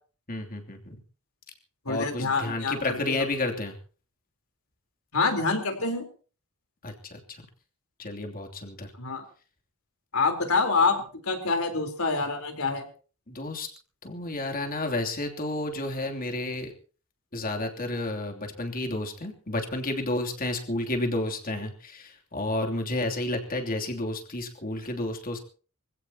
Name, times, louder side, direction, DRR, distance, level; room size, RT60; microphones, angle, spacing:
voice 1, 0.3-1.0 1.9-3.8 6.8-7.2 8.0-8.9 13.3-13.7 14.0-16.7 17.3-25.4, left 2 dB, 40° left, 2 dB, 3.0 m, -31 dB
voice 2, 1.9-3.2 5.1-6.0 9.0-9.2 10.1-12.8, left 4 dB, 75° left, 5 dB, 4.0 m, -26 dB
25.5 x 16.5 x 2.9 m, 0.40 s
head